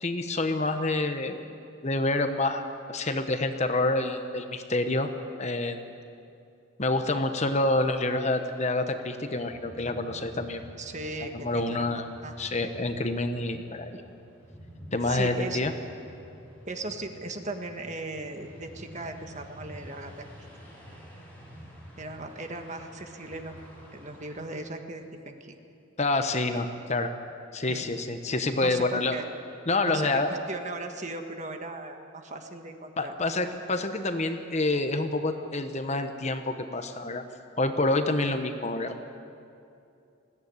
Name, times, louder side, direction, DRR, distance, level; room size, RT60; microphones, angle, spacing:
voice 1, 0.0-1.4 1.8-2.6 2.9-5.1 5.4-5.8 6.8-10.6 11.2-12.0 12.4-14.0 14.9-15.7 26.0-27.1 27.5-29.1 29.7-30.3 33.0-37.2 37.6-39.0, left 2 dB, 35° left, 7 dB, 1.1 m, -27 dB
sound 1, 9.3-24.5, equal, 10° left, 5.5 m, -48 dB
voice 2, 10.8-12.3 15.0-15.6 16.7-20.2 22.0-23.6 23.9-25.6 27.7-27.8 28.6-29.2 29.8-33.1, right 2 dB, 35° right, 5 dB, 1.6 m, -38 dB
21.0 x 16.0 x 9.6 m, 2.6 s
head